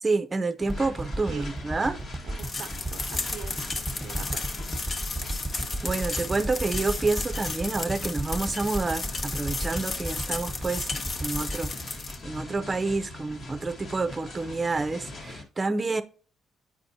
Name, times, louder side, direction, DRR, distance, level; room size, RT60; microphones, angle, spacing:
voice 1, 0.0-2.0 5.8-11.7 12.2-16.0, right 3 dB, 25° right, 0.6 m, -28 dB
sound 1, 0.6-15.4, left 2 dB, 55° left, 1.4 m, -42 dB
sound 2, 0.7-13.0 13.4-13.5, right 1 dB, 5° right, 1.3 m, -34 dB
voice 2, 2.2-3.7 4.0-4.4, right 9 dB, 80° right, 0.4 m, -42 dB
sound 3, 2.4-12.2, left 3 dB, 40° left, 0.8 m, -34 dB
8.7 x 4.3 x 2.7 m
cardioid pair, 90°, 0 cm